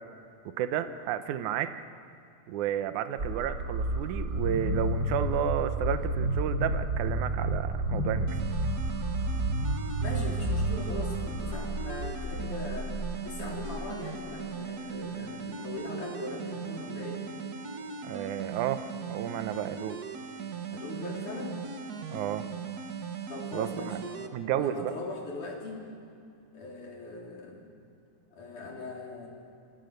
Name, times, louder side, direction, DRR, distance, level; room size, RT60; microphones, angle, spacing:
voice 1, 0.5-1.7 2.5-8.3 18.0-18.8 19.1-20.0 22.1-22.5 23.5-24.0 24.3-24.9, right 10 dB, 80° right, 10 dB, 2.4 m, -32 dB
sound 1, 3.2-14.1, right 1 dB, 30° right, 3.4 m, -31 dB
sound 2, 8.3-24.3, right 6 dB, 55° right, 1.0 m, -39 dB
voice 2, 10.0-12.9 13.2-17.2 20.7-21.6 23.3-25.8 26.5-27.7 28.3-29.3, left 2 dB, 80° left, -1 dB, 5.4 m, -40 dB
26.5 x 26.5 x 6.7 m, 2.6 s
omnidirectional pair, 3.5 m